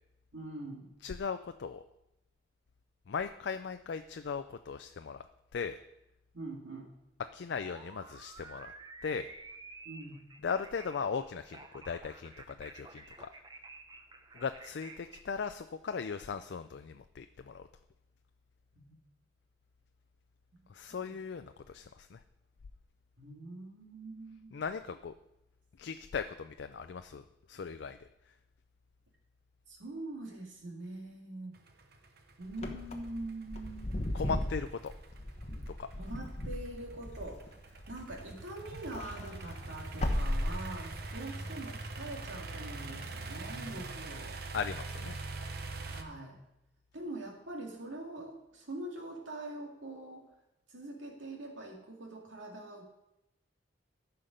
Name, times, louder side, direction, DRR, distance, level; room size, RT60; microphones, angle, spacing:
voice 1, 0.3-0.9 6.3-6.9 9.8-10.3 18.7-19.0 20.9-21.2 23.2-24.6 29.7-31.6 32.4-34.2 36.0-44.4 45.8-46.4 46.9-50.3 50.7-52.8, right 2 dB, 80° right, 0 dB, 2.3 m, -44 dB
voice 2, 1.0-1.8 3.1-5.2 5.5-5.8 7.3-8.7 9.0-9.3 10.4-13.3 14.3-17.7 20.7-22.2 24.5-25.1 25.8-28.1 34.1-34.9 35.7-35.9 44.5-45.2, left 5 dB, 65° left, 9 dB, 0.4 m, -38 dB
sound 1, 7.6-15.2, right 3 dB, 20° right, 0.7 m, -51 dB
sound 2, 31.5-46.0, right 3 dB, 50° right, 0.8 m, -43 dB
Wind / Car, 32.5-38.3 38.7-41.1, left 1 dB, 35° left, 1.0 m, -37 dB
14.0 x 5.7 x 5.1 m, 0.90 s
head